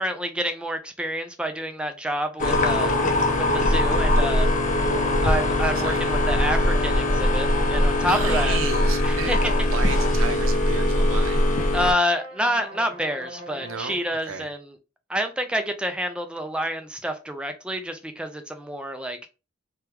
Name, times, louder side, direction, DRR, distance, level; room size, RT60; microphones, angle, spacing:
voice 1, 0.0-3.0 3.4-4.5 4.9-8.6 9.0-9.5 11.7-14.7 15.1-19.3, equal, 5° right, 0.3 m, -28 dB
sound 1, 2.4-11.9, left 1 dB, 40° left, 0.6 m, -21 dB
voice 2, 5.8-6.2 8.0-11.4 13.6-14.5, right 5 dB, 80° right, 0.5 m, -33 dB
sound 2, 10.2-14.2, right 1 dB, 35° right, 1.3 m, -41 dB
3.4 x 2.2 x 2.9 m
head